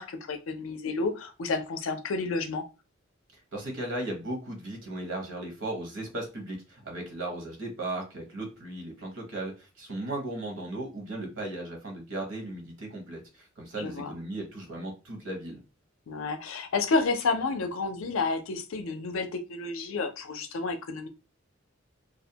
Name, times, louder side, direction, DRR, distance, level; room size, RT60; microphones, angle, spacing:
voice 1, 0.0-2.6 13.8-14.1 16.1-21.1, left 3 dB, 85° left, 7 dB, 0.5 m, -30 dB
voice 2, 3.5-15.6, right 1 dB, 70° right, 2 dB, 0.9 m, -36 dB
2.4 x 2.1 x 2.7 m, 0.29 s
head